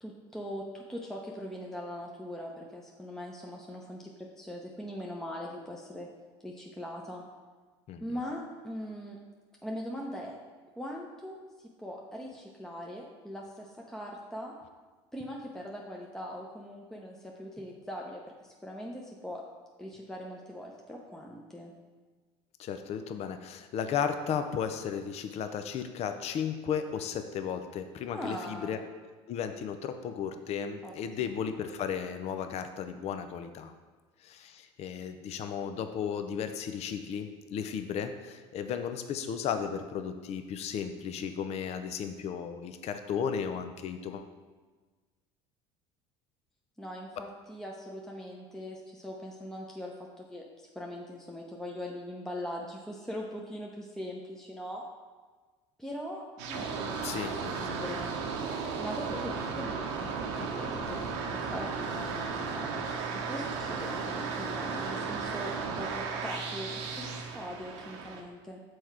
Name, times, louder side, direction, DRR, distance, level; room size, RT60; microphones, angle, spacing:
voice 1, 0.0-6.1 6.4-7.2 8.0-9.2 9.6-10.3 10.8-14.5 15.1-19.4 19.8-21.7 28.1-28.8 30.8-31.3 46.8-54.8 55.8-56.9 57.2-58.1 58.8-68.6, equal, 5° left, -2 dB, 0.8 m, -41 dB
voice 2, 22.6-28.8 29.3-33.7 34.2-44.3 57.0-57.9 60.4-60.5, left 7 dB, 50° left, 8 dB, 0.5 m, -35 dB
sound 1, 56.4-68.2, right 5 dB, 85° right, 0.9 m, -35 dB
6.3 x 4.5 x 4.8 m, 1.4 s
supercardioid pair, 90°, 14 cm